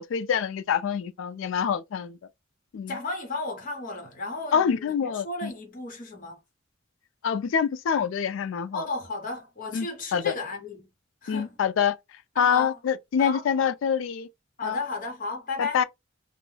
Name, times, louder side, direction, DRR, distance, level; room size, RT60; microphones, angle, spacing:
voice 1, 0.0-2.2 2.7-2.9 4.5-5.5 7.2-8.8 9.7-10.3 11.3-12.0 12.4-14.3 14.6-14.8 15.6-15.8, left 7 dB, 80° left, 0.3 m, -26 dB
voice 2, 2.9-6.4 8.7-10.9 11.2-11.6 12.3-12.8 13.2-13.5 14.6-15.8, left 3 dB, 45° left, 0.9 m, -34 dB
2.2 x 2.0 x 3.2 m
head